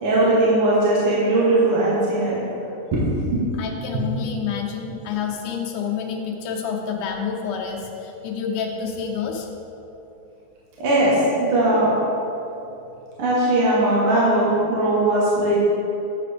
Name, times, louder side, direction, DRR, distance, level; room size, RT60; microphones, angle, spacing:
voice 1, 0.0-2.5 2.9-3.4 10.8-11.9 13.2-15.7, right 1 dB, 55° right, -7 dB, 1.9 m, -19 dB
voice 2, 3.6-9.5, left 6 dB, 85° left, 0 dB, 2.4 m, -28 dB
9.7 x 6.7 x 3.4 m, 2.9 s
omnidirectional pair, 3.5 m